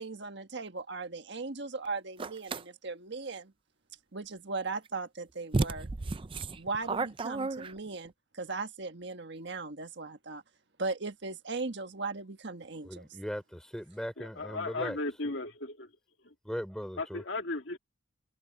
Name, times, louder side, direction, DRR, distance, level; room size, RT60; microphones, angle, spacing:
voice 1, 0.0-3.5 4.1-5.9 6.6-10.4 10.8-13.0, right 3 dB, 60° right, 1.5 m, -38 dB
sound 1, 2.2-2.6 4.9-5.0 5.5-8.1, right 3 dB, 25° right, 0.4 m, -32 dB
voice 2, 12.8-15.0 16.4-17.2, equal, 5° left, 3.8 m, -39 dB
voice 3, 14.2-15.9 16.2-16.3 17.0-17.8, left 2 dB, 65° left, 2.4 m, -36 dB
head